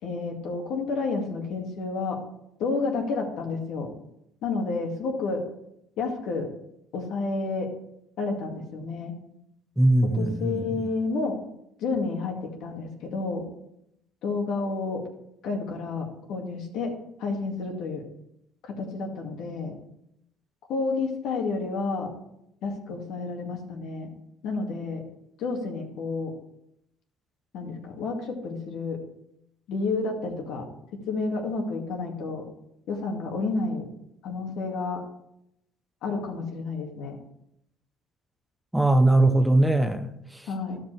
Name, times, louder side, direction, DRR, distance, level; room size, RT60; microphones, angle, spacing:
voice 1, 0.0-2.2 2.6-3.9 4.4-5.4 6.0-6.5 6.9-7.7 8.2-9.1 10.1-11.4 11.8-13.4 14.2-15.0 15.4-16.9 17.2-18.0 18.6-19.7 20.7-22.1 22.6-24.1 24.4-25.0 25.4-26.3 27.5-29.0 29.7-30.7 31.1-32.4 32.9-33.9 34.2-35.0 36.0-37.2 40.5-40.8, left 3 dB, 70° left, 2 dB, 2.1 m, -30 dB
voice 2, 9.8-10.6 38.7-40.5, right 2 dB, 5° right, 8 dB, 0.8 m, -21 dB
12.5 x 5.4 x 4.6 m, 0.79 s
supercardioid pair, 90°, 0 cm